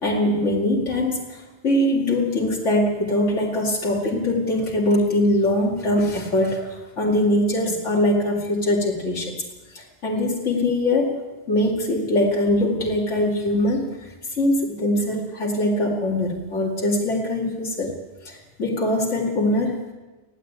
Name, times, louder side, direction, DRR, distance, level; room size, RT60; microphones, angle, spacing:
voice 1, 0.0-9.4 9.7-11.2 11.5-13.9 14.3-17.9 18.2-19.9, left 1 dB, 90° left, -3 dB, 2.8 m, -22 dB
20.0 x 15.0 x 8.8 m, 1.2 s
omnidirectional pair, 1.2 m